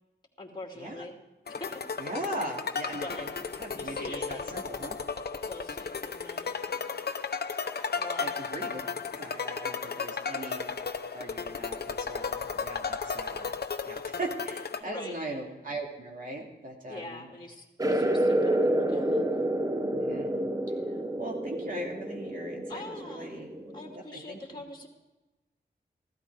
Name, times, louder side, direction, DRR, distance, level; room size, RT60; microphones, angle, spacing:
voice 1, 0.4-1.1 1.6-1.7 2.9-3.3 3.7-4.6 5.4-6.9 7.9-8.3 14.8-15.2 16.9-19.2 22.7-23.4 23.7-24.9, left 2 dB, 25° left, 1 dB, 2.5 m, -43 dB
sound 1, 1.5-14.8, left 5 dB, 65° left, 0.8 m, -34 dB
voice 2, 2.0-5.0 7.9-8.8 9.1-10.7 11.1-13.6 13.8-17.3 19.9-20.4 21.2-23.6 23.9-24.6, right 1 dB, 50° right, 0 dB, 2.7 m, -39 dB
sound 2, 17.8-23.9, right 1 dB, 20° right, 1.0 m, -29 dB
15.0 x 13.0 x 4.7 m, 1.1 s
wide cardioid pair, 75°, 18 cm